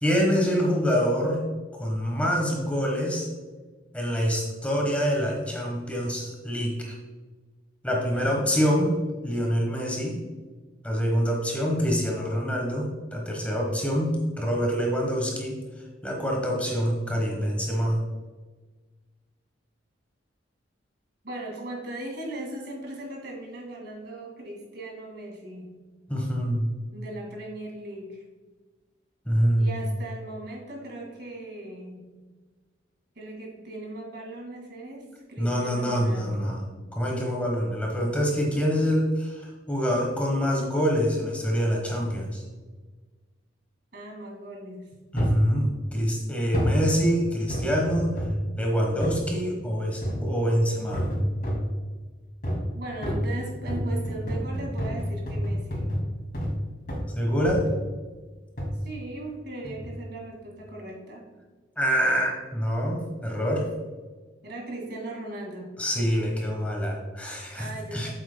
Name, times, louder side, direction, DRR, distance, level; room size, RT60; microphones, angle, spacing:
voice 1, 0.0-1.4 1.7-3.3 3.9-6.9 7.8-8.9 9.2-10.2 10.8-15.6 16.0-18.0 26.1-26.7 29.3-29.7 35.4-36.6 36.9-42.4 45.1-48.2 48.6-51.1 57.1-57.6 61.8-63.6 65.8-68.1, equal, 5° left, -1 dB, 1.1 m, -25 dB
voice 2, 8.1-8.5 21.2-25.7 26.9-28.2 29.6-32.0 33.2-36.6 43.9-44.9 52.7-55.9 58.8-61.2 64.4-65.7 67.5-68.1, right 1 dB, 55° right, 0 dB, 2.1 m, -38 dB
sound 1, 45.2-45.5 46.5-46.8 47.5-48.5 49.0-49.2 50.0-50.4 50.9-51.7 52.4-52.7 53.0-56.6 56.9-57.1 57.4-57.8 58.6-58.8 59.6-60.0 60.5-60.6, equal, 50° left, 2.2 m, -28 dB
8.2 x 8.0 x 2.2 m, 1.3 s
head